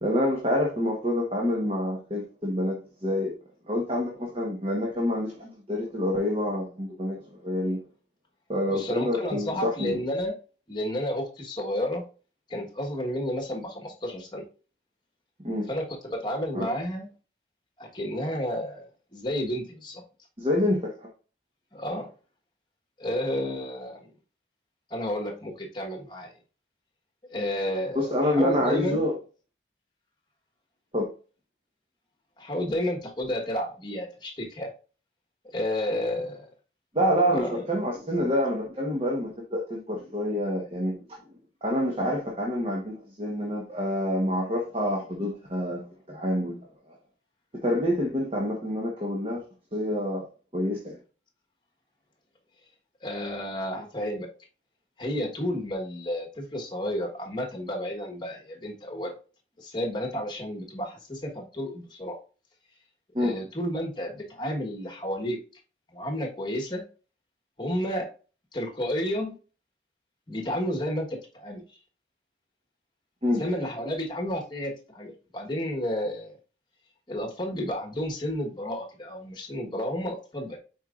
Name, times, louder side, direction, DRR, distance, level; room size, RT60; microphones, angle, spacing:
voice 1, 0.0-2.8 3.0-3.3 3.7-7.2 7.4-7.8 8.5-10.0 15.4-15.7 16.5-16.7 20.4-20.9 27.9-29.1 30.9-31.1 36.9-41.0 41.6-45.8 46.1-46.6 47.6-49.4 49.7-50.2 50.5-50.9 63.1-63.3 73.2-73.4, left 1 dB, 30° right, 1.1 m, -27 dB
voice 2, 8.7-10.3 10.7-12.0 12.5-14.4 15.7-17.1 17.8-20.0 21.7-22.1 23.0-24.1 24.9-26.3 27.3-29.0 32.4-34.7 35.5-36.4 37.3-37.6 53.0-54.3 55.0-59.1 59.6-62.2 63.2-65.4 65.9-66.8 67.6-68.1 68.5-69.3 70.3-71.6 73.4-76.4 77.1-80.6, equal, 25° left, 1.3 m, -31 dB
8.9 x 4.5 x 2.4 m
head